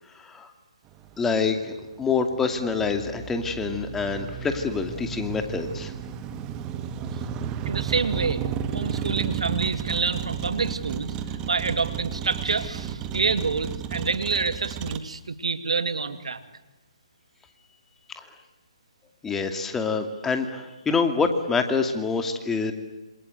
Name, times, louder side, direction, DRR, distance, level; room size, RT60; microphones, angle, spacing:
voice 1, 0.1-0.5 1.2-5.9 18.2-18.3 19.2-22.7, left 4 dB, 10° left, 6 dB, 2.5 m, -26 dB
Motor vehicle (road), 0.9-15.0, right 8 dB, 20° right, 1.9 m, -33 dB
voice 2, 7.6-16.4, right 4 dB, 75° right, 10 dB, 2.6 m, -27 dB
27.5 x 27.0 x 8.1 m, 1.1 s
hypercardioid pair, 145°, 3 cm